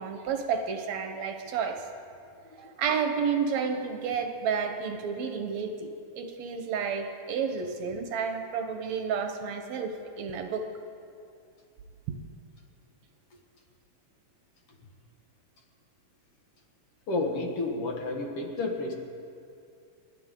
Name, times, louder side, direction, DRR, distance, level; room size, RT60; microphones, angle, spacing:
voice 1, 0.0-1.8 2.6-10.7, right 6 dB, 65° right, 5 dB, 2.0 m, -31 dB
voice 2, 17.1-18.9, left 2 dB, 50° left, 1 dB, 2.3 m, -30 dB
29.5 x 11.5 x 3.8 m, 2.5 s
omnidirectional pair, 3.8 m